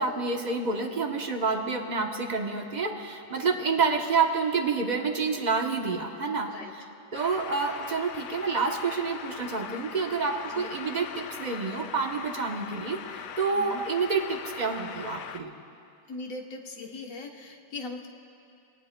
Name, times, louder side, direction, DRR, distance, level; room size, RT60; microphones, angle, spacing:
voice 1, 0.0-6.8 7.1-15.5, right 4 dB, 35° right, 2 dB, 0.8 m, -28 dB
sound 1, 7.1-15.4, left 8 dB, 85° left, 1.2 m, -41 dB
voice 2, 16.1-18.1, left 3 dB, 55° left, 2 dB, 1.4 m, -39 dB
22.5 x 18.5 x 2.2 m, 2.6 s
omnidirectional pair, 1.8 m